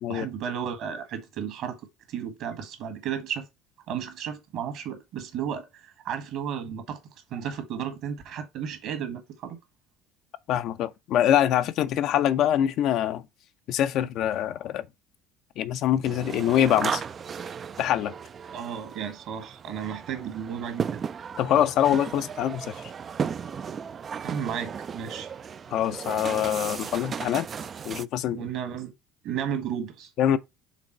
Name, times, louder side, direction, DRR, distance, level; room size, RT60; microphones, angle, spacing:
voice 1, 0.1-1.8 2.1-3.4 3.9-7.0 7.3-9.6 18.5-21.0 24.2-25.3 28.3-28.9 29.2-30.1, right 8 dB, 55° right, 1.7 m, -33 dB
voice 2, 10.5-13.2 13.7-14.9 15.6-17.0 17.8-18.1 21.4-22.7 25.7-27.5 27.8-28.5 30.2-30.4, left 11 dB, 55° left, 0.5 m, -24 dB
sound 1, 16.0-28.1, right 6 dB, 35° right, 0.3 m, -35 dB
6.0 x 3.8 x 4.4 m
figure-of-eight pair, 60°, 0 cm